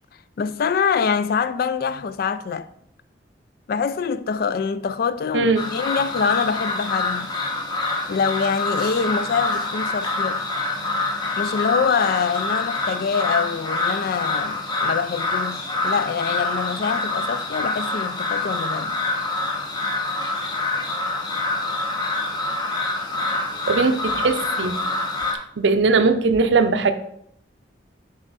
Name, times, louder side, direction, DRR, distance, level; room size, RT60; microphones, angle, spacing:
voice 1, 0.4-2.7 3.7-7.3 8.1-10.4 11.4-19.0, left 6 dB, 55° left, 0.3 m, -24 dB
sound 1, 5.6-25.3, left 2 dB, 25° left, 1.0 m, -26 dB
voice 2, 23.7-24.8 25.6-26.9, right 4 dB, 80° right, 0.6 m, -19 dB
7.0 x 5.2 x 4.0 m
head